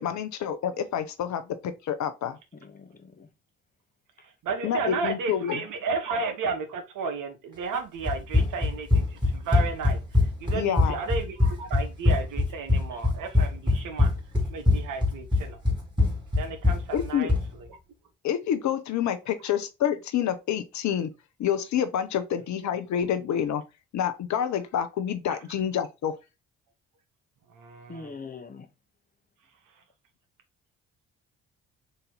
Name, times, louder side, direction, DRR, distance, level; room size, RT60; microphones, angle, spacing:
voice 1, 0.0-2.4 4.6-5.6 10.5-11.0 16.9-17.3 18.2-21.1 21.4-23.6 23.9-26.1, left 9 dB, 50° left, 0.6 m, -28 dB
voice 2, 2.6-3.3 12.9-13.0 27.9-28.7, left 4 dB, 25° left, 0.9 m, -42 dB
voice 3, 4.4-10.0 10.4-14.1 14.5-15.6 16.4-17.3 27.5-28.1, right 4 dB, 55° right, 1.0 m, -33 dB
Run, 8.1-17.5, left 2 dB, 10° right, 2.1 m, -23 dB
4.0 x 2.7 x 3.7 m
hypercardioid pair, 45°, 37 cm